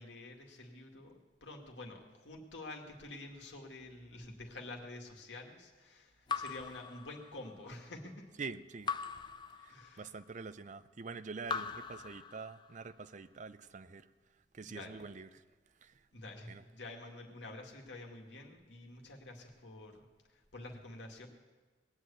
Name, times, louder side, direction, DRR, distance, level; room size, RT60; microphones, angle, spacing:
voice 1, 0.0-8.3 9.7-10.1 11.6-11.7 14.6-15.0 16.1-21.3, left 2 dB, 75° left, 2 dB, 2.1 m, -49 dB
Raindrop / Drip, 6.3-7.7 8.9-10.2 11.4-12.9, left 5 dB, 25° left, 0.5 m, -41 dB
voice 2, 8.4-8.9 9.6-14.0 14.5-15.3 15.8-15.9 16.5-16.6, right 4 dB, 40° right, 13 dB, 0.5 m, -45 dB
19.5 x 7.8 x 8.4 m, 1.3 s
head